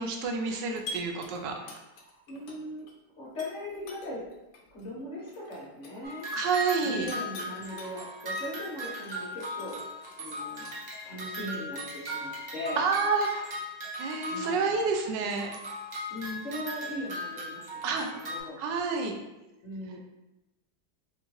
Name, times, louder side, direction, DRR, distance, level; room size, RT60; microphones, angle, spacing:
voice 1, 0.0-1.5 6.3-7.1 12.8-13.5 14.0-15.5 17.8-18.1 18.6-19.1, right 4 dB, 85° right, 3 dB, 1.3 m, -29 dB
sound 1, 0.7-2.9 3.3-7.9 8.3-11.5, left 2 dB, 80° left, 1.2 m, -46 dB
voice 2, 2.3-2.9 3.2-4.3 4.7-6.3 6.8-9.9 10.2-10.7 11.0-12.8 14.3-14.8 16.1-18.8 19.6-20.0, left 1 dB, 45° left, -6 dB, 1.2 m, -39 dB
sound 2, 6.0-14.9 15.3-18.4, equal, 55° right, 0.4 m, -38 dB
4.3 x 2.5 x 3.0 m, 0.98 s
omnidirectional pair, 1.9 m